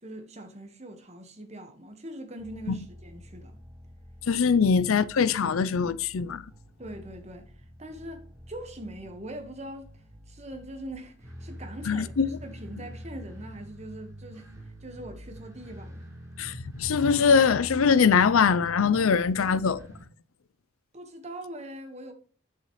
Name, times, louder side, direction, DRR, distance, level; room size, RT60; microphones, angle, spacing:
voice 1, 0.0-3.6 6.8-9.9 10.3-12.1 12.4-16.1 20.9-22.1, right 1 dB, 30° right, 1.4 m, -42 dB
sound 1, 2.4-20.0, equal, 15° right, 3.5 m, -46 dB
voice 2, 4.3-6.4 11.9-12.3 16.4-19.8, left 6 dB, 85° left, 0.5 m, -22 dB
8.3 x 7.1 x 3.1 m
head